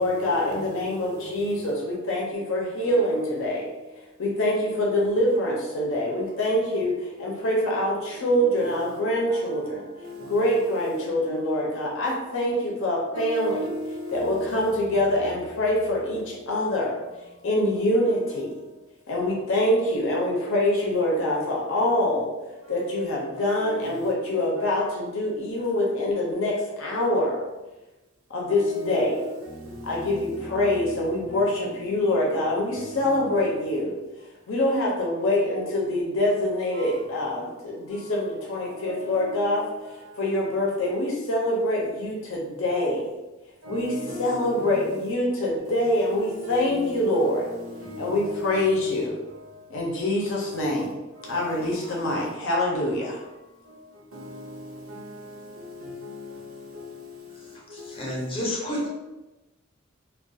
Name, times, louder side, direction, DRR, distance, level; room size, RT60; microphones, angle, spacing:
voice 1, 0.0-3.7 4.2-9.9 10.3-13.7 14.1-17.0 17.4-18.5 19.1-22.3 22.7-27.4 28.3-29.2 29.8-34.0 34.5-39.6 40.1-43.1 43.7-43.9 44.2-47.5 48.0-49.2 49.7-51.0 51.3-53.2, left 1 dB, 70° left, 0.6 m, -25 dB
voice 2, 2.9-3.2 8.3-8.6 10.0-10.2 13.1-14.2 17.9-18.0 23.6-24.0 28.5-29.2 29.5-29.7 30.3-30.6 32.7-33.3 38.8-39.4 40.8-41.0 43.6-44.7 45.7-46.0 46.4-47.2 47.8-48.3 48.6-48.7 50.4-50.5 51.3-51.5 54.1-54.5 54.9-55.0 55.8-56.3 58.7-58.9, left 1 dB, 75° right, 0.6 m, -37 dB
voice 3, 57.7-58.9, left 1 dB, 25° left, 0.6 m, -30 dB
2.3 x 2.2 x 2.6 m
head